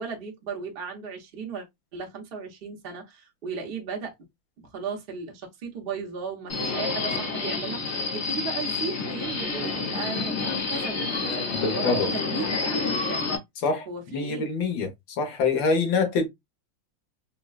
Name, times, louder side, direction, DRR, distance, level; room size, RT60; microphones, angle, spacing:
voice 1, 0.0-1.7 1.9-4.1 4.6-13.2 13.9-14.4, right 4 dB, 40° right, 0.9 m, -36 dB
Subway metro underground, 6.5-13.4, left 4 dB, 45° left, 1.0 m, -29 dB
voice 2, 11.6-12.1 13.6-14.9 15.2-16.3, left 4 dB, 75° left, 1.8 m, -25 dB
5.3 x 2.3 x 2.3 m
omnidirectional pair, 2.1 m